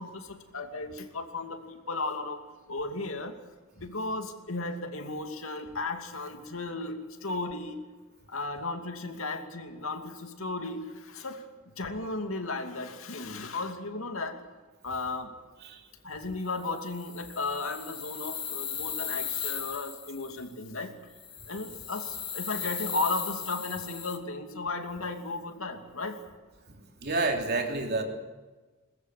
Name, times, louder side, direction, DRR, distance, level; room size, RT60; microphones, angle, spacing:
voice 1, 0.0-1.6 1.9-2.4 2.7-3.3 3.8-7.0 7.2-7.8 8.3-10.8 11.1-11.4 11.8-14.4 14.8-15.3 16.0-20.9 21.5-22.1 22.3-26.1, left 3 dB, 75° left, 5 dB, 2.6 m, -35 dB
sound 1, 16.5-20.5 21.1-24.2, left 7 dB, 25° left, 2.1 m, -37 dB
voice 2, 27.0-28.0, right 3 dB, 50° right, 3 dB, 3.4 m, -28 dB
22.0 x 20.0 x 8.4 m, 1.3 s
head